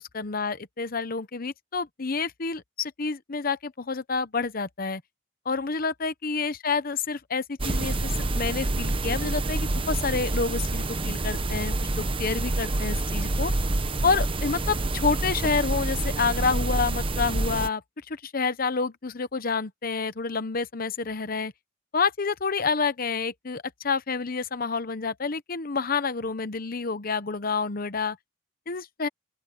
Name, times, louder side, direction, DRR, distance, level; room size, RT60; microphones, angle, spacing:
voice 1, 0.0-5.0 5.4-13.5 14.0-17.8 18.1-21.5 21.9-28.2 28.7-29.1, left 4 dB, 50° left, 0.9 m, -28 dB
sound 1, 7.6-17.7, right 2 dB, 30° right, 0.9 m, -27 dB
open air
head